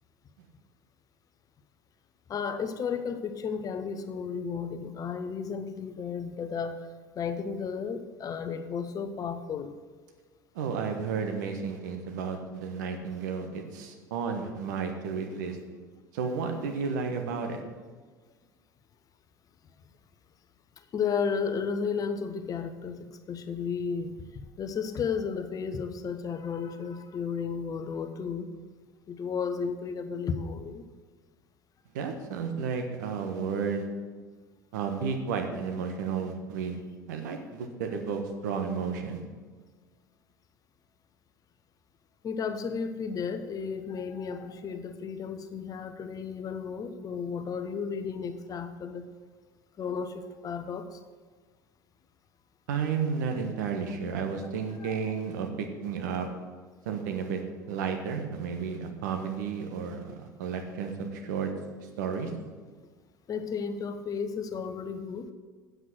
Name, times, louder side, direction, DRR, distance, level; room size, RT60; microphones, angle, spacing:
voice 1, 2.3-6.8 7.2-9.7 20.9-23.0 23.3-24.1 24.6-28.5 29.1-30.8 42.2-49.0 49.8-50.1 50.4-50.9 54.8-55.0 63.3-65.3, left 6 dB, 35° left, 9 dB, 0.9 m, -33 dB
voice 2, 10.5-15.6 16.1-17.6 31.9-33.9 34.7-36.8 37.1-39.2 52.7-56.3 56.8-57.4 57.7-61.5 62.0-62.3, right 6 dB, 70° right, 4 dB, 1.3 m, -32 dB
8.0 x 7.8 x 6.1 m, 1.4 s
figure-of-eight pair, 70°, 10 cm